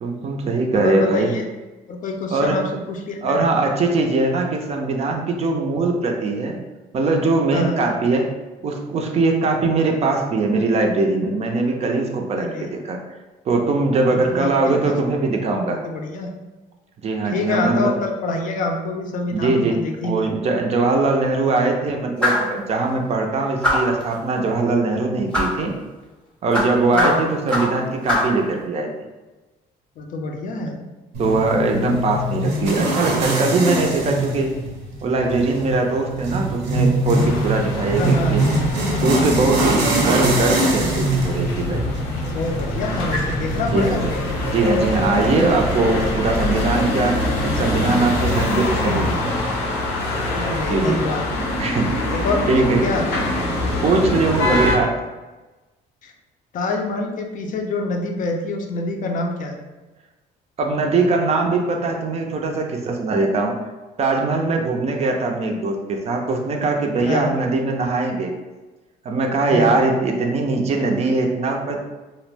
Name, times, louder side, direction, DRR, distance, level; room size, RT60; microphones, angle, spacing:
voice 1, 0.0-1.4 2.3-2.6 3.2-6.6 6.9-8.3 8.6-13.0 13.5-15.8 17.0-18.0 19.3-25.7 26.4-28.9 31.2-34.5 35.0-38.4 38.9-41.8 43.7-44.0 44.5-49.3 50.7-51.0 51.6-51.9 52.5-52.8 53.8-54.9 60.6-63.6 64.0-68.3 69.0-71.8, right 3 dB, 40° right, 2 dB, 0.4 m, -21 dB
voice 2, 0.7-1.5 1.9-3.4 7.5-7.8 12.4-12.7 14.1-14.9 15.8-16.3 17.2-20.4 26.9-27.3 30.0-30.8 38.0-38.4 42.2-44.3 50.3-51.3 52.1-53.1 56.0-56.1 56.5-59.6 67.0-67.3 69.5-69.7, left 3 dB, 50° left, 2 dB, 0.4 m, -26 dB
sound 1, 22.2-22.5 23.6-24.0 25.3-25.6 26.5-27.8 28.1-28.4, left 1 dB, 5° left, 0.6 m, -21 dB
sound 2, 31.1-48.5, right 1 dB, 85° right, 0.6 m, -24 dB
sound 3, 37.1-54.8, left 2 dB, 90° left, 0.7 m, -24 dB
2.3 x 2.0 x 3.2 m, 1.2 s
cardioid pair, 110°, 17 cm